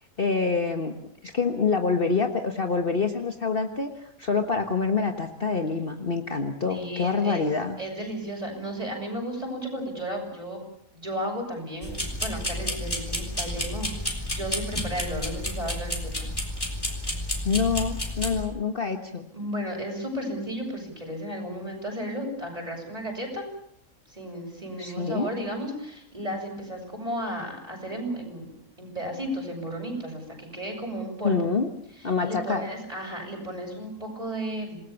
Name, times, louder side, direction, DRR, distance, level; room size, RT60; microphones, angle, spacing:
voice 1, 0.2-0.9 1.2-7.8 17.4-19.3 24.8-25.3 31.2-31.7 32.0-32.6, left 4 dB, 40° left, 6 dB, 1.6 m, -26 dB
voice 2, 6.7-7.4 7.8-10.6 10.9-16.3 19.3-23.4 24.1-31.4 32.2-34.8, equal, 25° right, 1 dB, 7.5 m, -34 dB
sound 1, 11.8-18.4, left 1 dB, 15° left, 4.1 m, -31 dB
28.0 x 20.0 x 7.1 m, 0.69 s
omnidirectional pair, 1.5 m